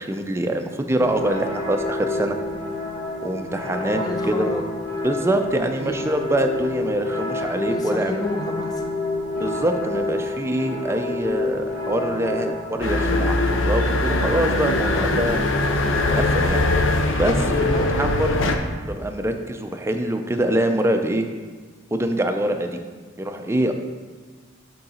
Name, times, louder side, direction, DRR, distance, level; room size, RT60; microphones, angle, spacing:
voice 1, 0.0-2.4 3.2-4.0 4.4-4.5 5.0-8.1 9.4-15.4 16.1-16.6 17.2-18.5 18.9-21.3 21.9-22.7 23.2-23.7, right 1 dB, 15° right, 5 dB, 0.4 m, -24 dB
sound 1, 1.0-13.0, left 2 dB, 45° left, 1.1 m, -28 dB
voice 2, 3.9-4.6 5.8-6.1 7.7-8.9 14.9-15.2 17.7-18.0, left 1 dB, 20° left, 3 dB, 0.7 m, -31 dB
sound 2, 12.8-18.6, left 2 dB, 80° left, 0.6 m, -21 dB
8.0 x 3.8 x 4.2 m, 1.5 s
head